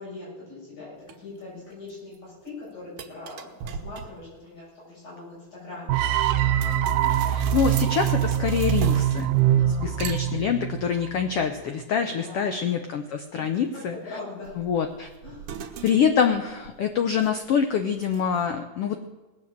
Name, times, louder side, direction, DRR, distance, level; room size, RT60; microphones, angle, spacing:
voice 1, 0.0-6.0 9.6-10.5 12.0-12.8 13.3-14.5 15.2-15.5, left 3 dB, 60° left, -8 dB, 8.9 m, -42 dB
sound 1, 1.1-1.2 1.7-2.2 2.5-2.6 3.0-4.4 6.6-9.6 10.0-10.8 14.4-17.5 18.0-18.4, right 7 dB, 70° right, 2.5 m, -40 dB
sound 2, 5.9-11.0, right 11 dB, 90° right, 2.3 m, -23 dB
voice 2, 7.3-9.3 9.6-14.0 14.6-15.1 15.8-19.0, left 7 dB, 85° left, 6 dB, 1.3 m, -25 dB
19.5 x 8.4 x 7.6 m, 1.2 s
omnidirectional pair, 3.8 m